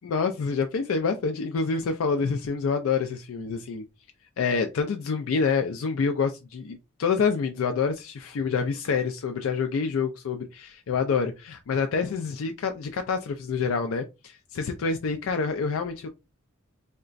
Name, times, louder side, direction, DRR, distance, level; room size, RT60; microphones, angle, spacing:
voice 1, 0.0-3.8 4.4-16.1, left 5 dB, 80° left, 0.4 m, -27 dB
3.8 x 2.2 x 2.4 m
head